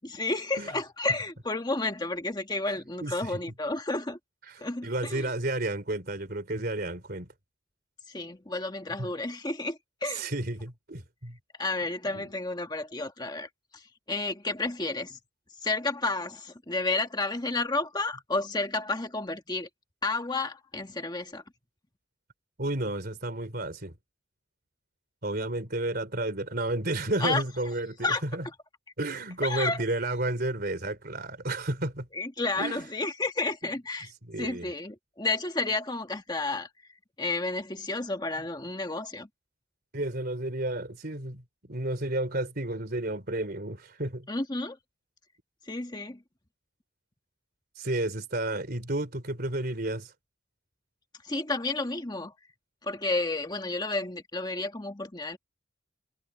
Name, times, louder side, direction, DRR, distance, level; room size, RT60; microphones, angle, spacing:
voice 1, 0.0-4.2 4.6-5.3 8.1-10.3 11.6-15.2 15.6-19.7 20.0-21.4 27.2-27.4 28.0-28.2 29.4-29.8 32.1-34.1 34.4-36.7 37.2-39.3 44.3-44.8 45.6-46.2 51.2-52.3 52.8-55.4, left 3 dB, 20° left, 1.6 m, -31 dB
voice 2, 3.0-3.4 4.5-7.3 10.1-11.4 12.1-12.3 22.6-24.0 25.2-28.5 29.0-32.1 32.6-32.8 34.2-34.7 39.9-44.3 47.8-50.1, right 2 dB, 50° right, 3.6 m, -32 dB
head